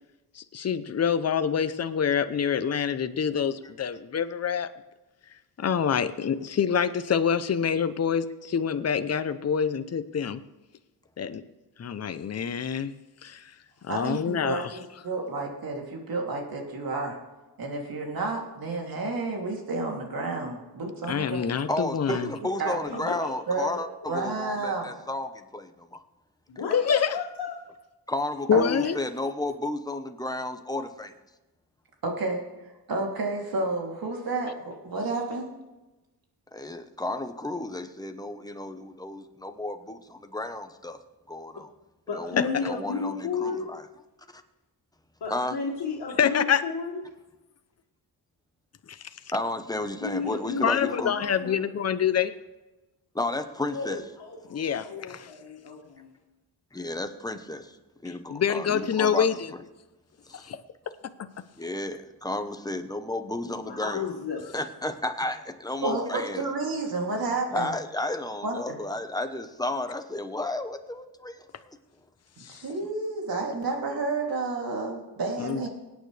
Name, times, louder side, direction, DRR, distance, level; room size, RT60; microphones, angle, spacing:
voice 1, 0.3-4.7 5.6-10.4 11.2-11.4 11.8-12.9 13.2-13.5 13.9-14.8 21.1-22.3 26.7-27.1 28.5-29.0 46.2-46.6 48.9-49.0 50.6-52.3 54.5-55.3 58.3-59.5 60.3-60.6 72.4-72.6 75.4-75.7, left 7 dB, 40° left, 11 dB, 0.8 m, -26 dB
voice 2, 13.9-17.2 17.6-21.6 22.1-22.2 22.6-22.8 23.2-23.7 24.1-24.9 28.5-28.7 32.0-35.5 65.8-67.7 68.4-68.6 72.5-75.7, right 3 dB, 60° right, 0 dB, 3.1 m, -31 dB
voice 3, 21.7-26.0 28.1-31.2 36.5-41.0 41.3-41.7 42.1-43.8 44.3-44.4 45.3-45.6 49.3-51.1 53.1-54.0 56.7-57.8 58.0-59.6 60.3-60.5 61.6-64.1 64.5-66.4 67.5-71.8, left 2 dB, 10° left, 7 dB, 1.0 m, -33 dB
voice 4, 22.9-23.3 26.5-27.5 42.1-43.7 45.2-47.0 50.0-51.6 53.7-56.1 63.4-64.4, left 5 dB, 75° left, -5 dB, 2.2 m, -33 dB
24.0 x 9.3 x 3.4 m, 1.1 s
wide cardioid pair, 115°, 39 cm